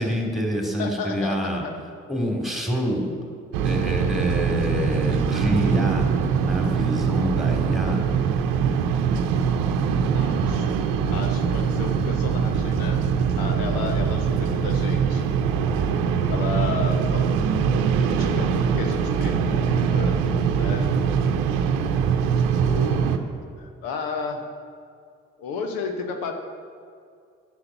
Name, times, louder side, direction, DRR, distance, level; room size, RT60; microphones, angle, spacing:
voice 1, 0.0-1.6 2.1-3.1 3.6-8.0, equal, ahead, 1 dB, 2.6 m, -26 dB
voice 2, 0.8-1.7 10.1-13.0 13.4-15.3 16.3-20.2 20.5-20.9 22.5-23.1 23.6-24.5 25.4-26.3, left 5 dB, 70° left, 5 dB, 1.0 m, -33 dB
sound 1, 3.5-23.2, right 6 dB, 75° right, 0.8 m, -23 dB
9.7 x 6.6 x 7.0 m, 2.3 s
hypercardioid pair, 45°, 35 cm